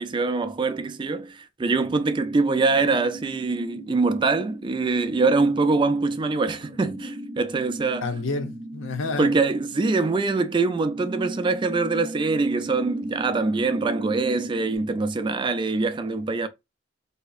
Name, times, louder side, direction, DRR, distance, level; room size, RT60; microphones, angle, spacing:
voice 1, 0.0-8.1 9.2-16.5, right 3 dB, 25° right, 0.3 m, -24 dB
sound 1, 2.4-14.8, right 1 dB, 45° right, 0.7 m, -38 dB
voice 2, 8.0-9.3 15.7-15.8, left 3 dB, 85° left, 0.7 m, -30 dB
4.0 x 2.8 x 2.3 m
head